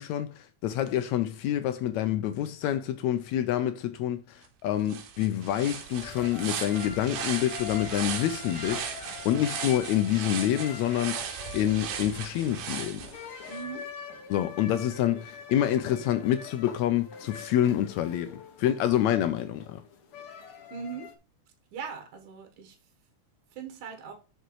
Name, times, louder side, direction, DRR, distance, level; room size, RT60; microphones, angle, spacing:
voice 1, 0.0-11.2 11.5-13.0 14.3-19.8, left 11 dB, 85° left, 1.6 m, -27 dB
sound 1, 4.4-4.5 4.9-13.6, right 8 dB, 85° right, 2.9 m, -37 dB
sound 2, 5.4-21.2, left 7 dB, 60° left, 1.5 m, -44 dB
voice 2, 13.5-13.8 20.7-21.1 21.7-22.8 23.6-24.1, right 6 dB, 70° right, 2.9 m, -39 dB
6.7 x 6.1 x 4.6 m
omnidirectional pair, 3.8 m